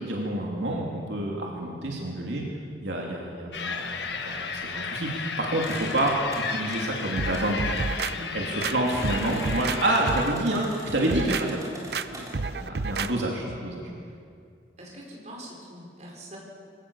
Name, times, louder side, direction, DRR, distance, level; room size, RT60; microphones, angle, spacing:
voice 1, 0.0-2.5 2.8-7.6 8.3-11.6 12.1-13.9, right 1 dB, 85° right, -1 dB, 3.0 m, -28 dB
sound 1, 3.5-10.3, left 5 dB, 75° left, 1.5 m, -34 dB
sound 2, 5.6-12.3, right 1 dB, 20° right, 3.9 m, -44 dB
sound 3, 7.2-8.1 8.6-9.8 10.1-10.4 10.9-11.4 11.9-12.1 12.3-13.1 13.5-13.6, right 4 dB, 60° right, 0.7 m, -30 dB
voice 2, 8.1-8.4 12.1-12.6 14.0-14.1 14.8-16.4, equal, 40° right, -2 dB, 5.1 m, -44 dB
22.5 x 17.5 x 7.1 m, 2.3 s
head